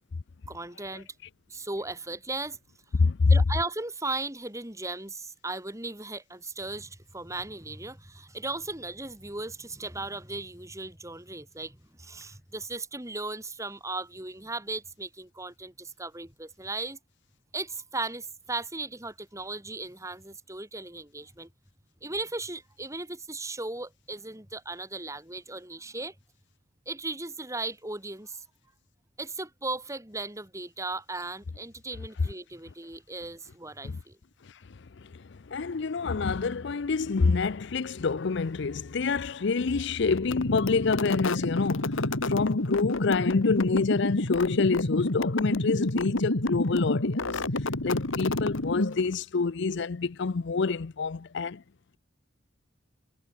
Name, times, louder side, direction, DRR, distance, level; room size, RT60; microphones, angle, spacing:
voice 1, 0.5-1.1 1.5-2.6 3.3-17.0 17.5-21.5 22.0-26.1 26.9-28.4 29.2-34.2, right 2 dB, 15° right, 3.9 m, -37 dB
voice 2, 3.0-3.3 33.8-34.0 35.1-35.2 35.5-41.9 42.2-47.4 47.8-51.6, left 4 dB, 60° left, 0.5 m, -27 dB
sound 1, 40.2-49.1, left 2 dB, 80° left, 2.1 m, -29 dB
head